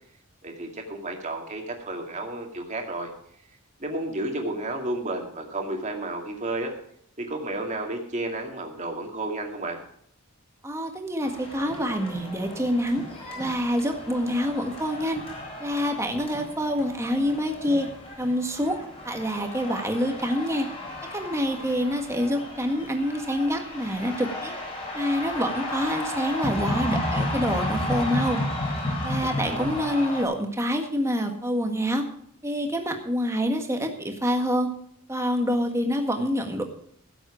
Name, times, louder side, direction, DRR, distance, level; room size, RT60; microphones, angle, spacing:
voice 1, 0.4-3.1 3.8-6.7 7.2-9.8 29.4-29.7, right 2 dB, 35° right, 2 dB, 2.3 m, -32 dB
voice 2, 10.6-13.0 13.4-15.2 15.6-17.9 18.2-18.8 19.0-20.7 21.1-24.5 24.9-28.4 29.0-32.0 32.4-34.7 35.1-36.6, equal, 15° right, 4 dB, 1.7 m, -26 dB
sound 1, 11.2-30.2, left 1 dB, 25° left, 3.8 m, -33 dB
16.0 x 7.8 x 5.0 m, 0.68 s
head